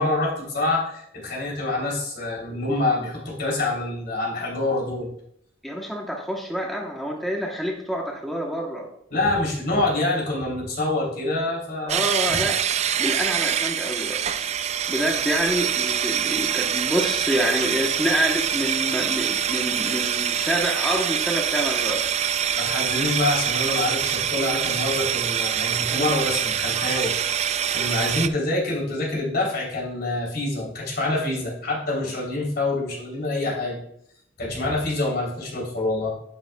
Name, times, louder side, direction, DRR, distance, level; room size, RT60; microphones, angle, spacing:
voice 1, 0.0-5.1 9.1-12.0 22.6-27.2 27.7-33.8 34.4-36.2, left 2 dB, 60° left, -3 dB, 3.4 m, -26 dB
voice 2, 5.6-8.9 11.8-14.2 14.9-22.0, equal, ahead, -1 dB, 1.0 m, -27 dB
sound 1, 11.9-28.3, right 9 dB, 35° right, 0.3 m, -25 dB
10.5 x 8.9 x 2.3 m, 0.71 s
head